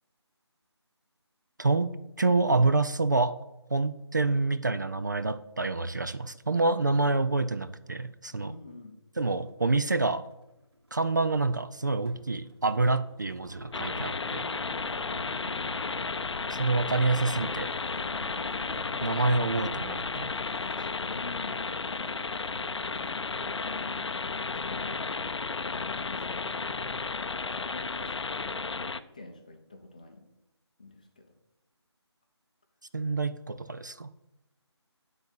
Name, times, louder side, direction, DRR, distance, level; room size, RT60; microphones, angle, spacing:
voice 1, 1.6-3.4 3.7-8.5 9.2-10.2 10.9-14.5 16.5-17.7 19.0-20.3 32.9-34.1, right 3 dB, 40° right, 13 dB, 0.4 m, -27 dB
voice 2, 8.3-9.0 15.1-15.8 21.0-21.8 22.5-22.6 23.3-25.2 25.6-26.8 27.5-28.5 28.8-30.3 30.8-31.3, left 3 dB, 15° left, 4 dB, 0.6 m, -47 dB
sound 1, 9.4-9.5 9.8-24.5, equal, 60° right, 2.3 m, -49 dB
sound 2, 13.7-29.0, left 4 dB, 70° left, 0.6 m, -33 dB
9.9 x 4.0 x 7.3 m, 0.93 s
figure-of-eight pair, 175°, 15 cm